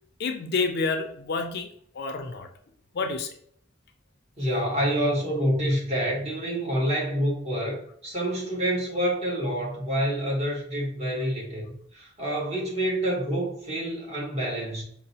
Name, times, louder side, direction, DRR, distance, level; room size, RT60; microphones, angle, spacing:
voice 1, 0.2-1.7 1.9-2.5 2.9-3.3, left 4 dB, 55° left, 6 dB, 0.4 m, -28 dB
voice 2, 4.4-14.8, equal, 35° right, -3 dB, 1.2 m, -27 dB
4.8 x 2.0 x 2.8 m, 0.63 s
head